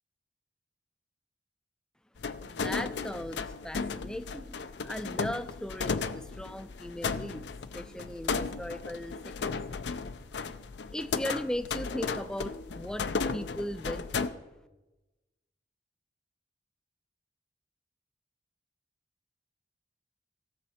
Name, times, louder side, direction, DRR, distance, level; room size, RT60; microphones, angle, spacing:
sound 1, 2.2-14.3, left 5 dB, 75° left, 0.5 m, -35 dB
voice 1, 2.5-4.6 4.8-7.4 7.7-9.6 10.9-14.4, equal, 5° left, 11 dB, 0.4 m, -38 dB
17.0 x 6.5 x 4.3 m, 1.1 s
head